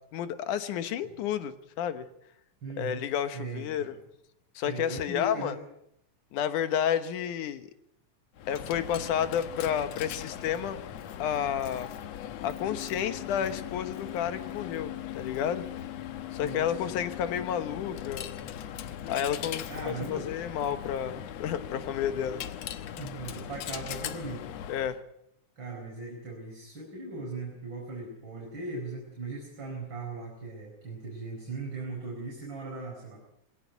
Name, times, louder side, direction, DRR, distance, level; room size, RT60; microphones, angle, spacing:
voice 1, 0.1-2.1 2.8-3.9 4.6-5.6 6.3-7.7 8.5-10.8 11.2-11.9 12.4-15.7 16.3-18.3 19.1-22.4 24.7-25.0, left 9 dB, 85° left, 11 dB, 2.7 m, -31 dB
voice 2, 2.6-3.0 3.3-3.9 4.6-5.6 16.4-16.8 19.7-20.3 23.0-24.5 25.6-33.2, right 3 dB, 40° right, -1 dB, 5.6 m, -39 dB
Coin (dropping), 8.4-25.0, left 10 dB, 65° left, 2.1 m, -39 dB
22.5 x 17.5 x 9.3 m, 0.78 s
omnidirectional pair, 3.5 m